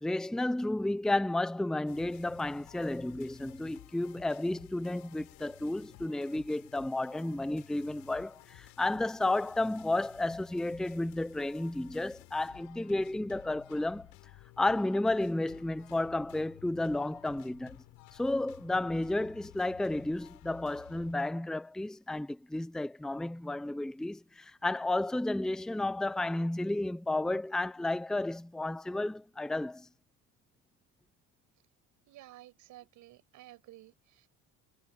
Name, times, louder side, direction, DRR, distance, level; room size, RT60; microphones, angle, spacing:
voice 1, 0.0-14.1 14.6-17.8 18.1-29.9, left 2 dB, ahead, 0.7 m, -32 dB
sound 1, 1.9-21.2, left 22 dB, 85° left, 3.8 m, -55 dB
voice 2, 32.1-34.3, right 15 dB, 60° right, 6.9 m, -53 dB
cardioid pair, 150°, 34 cm